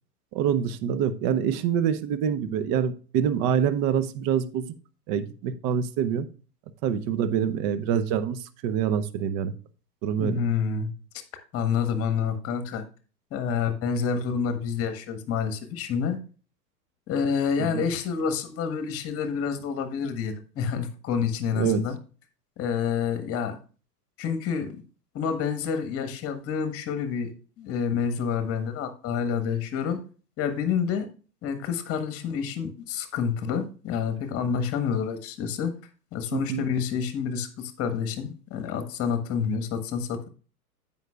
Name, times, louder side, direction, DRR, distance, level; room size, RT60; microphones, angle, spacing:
voice 1, 0.3-4.7 5.1-6.3 6.8-9.5 10.0-10.4 17.6-17.8 21.5-21.8 36.3-36.7, right 8 dB, 30° right, 13 dB, 0.7 m, -26 dB
voice 2, 10.2-10.9 11.5-12.8 13.3-16.2 17.1-22.0 22.6-23.6 24.2-24.8 25.1-27.3 27.6-30.0 30.4-31.1 31.4-35.7 36.1-40.3, left 6 dB, 30° left, 8 dB, 1.4 m, -28 dB
15.5 x 5.4 x 2.3 m, 0.37 s
figure-of-eight pair, 95°, 48 cm